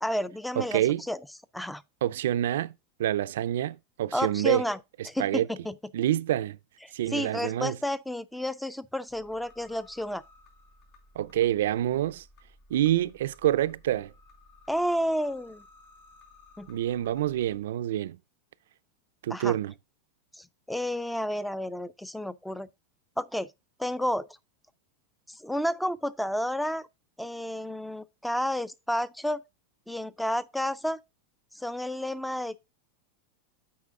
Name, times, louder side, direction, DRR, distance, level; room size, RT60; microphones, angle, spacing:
voice 1, 0.0-1.2 1.5-1.8 4.1-4.8 5.1-5.8 6.8-10.2 14.7-15.6 16.6-16.7 19.3-19.6 20.3-22.7 23.2-23.5 23.8-24.3 25.3-26.9 27.2-29.4 29.9-31.0 31.5-32.7, equal, ahead, 0.3 m, -31 dB
voice 2, 0.6-1.0 2.0-2.7 3.0-4.7 5.2-5.5 5.9-6.6 6.9-7.8 11.2-12.2 12.7-14.1 16.7-18.2 19.2-19.7, right 12 dB, 80° right, 0.4 m, -27 dB
sound 1, 9.1-17.6, left 2 dB, 45° left, 3.6 m, -57 dB
8.5 x 4.8 x 3.6 m
supercardioid pair, 160°, 0 cm